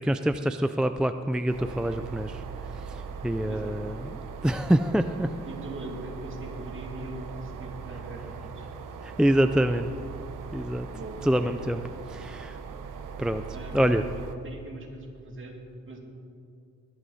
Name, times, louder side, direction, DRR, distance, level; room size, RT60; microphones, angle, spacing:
voice 1, 0.0-4.2 4.4-5.3 9.0-9.9 10.5-10.9 11.2-11.8 12.1-12.6 13.2-13.4 13.7-14.0, equal, 5° right, 8 dB, 0.3 m, -26 dB
sound 1, 1.5-14.4, right 5 dB, 85° right, 1.0 m, -40 dB
voice 2, 3.5-4.0 5.4-8.6 10.6-11.8 13.5-13.9 14.1-15.6 15.9-16.0, right 2 dB, 40° right, 0 dB, 2.6 m, -41 dB
20.5 x 11.5 x 4.1 m, 2.4 s
wide cardioid pair, 115°, 31 cm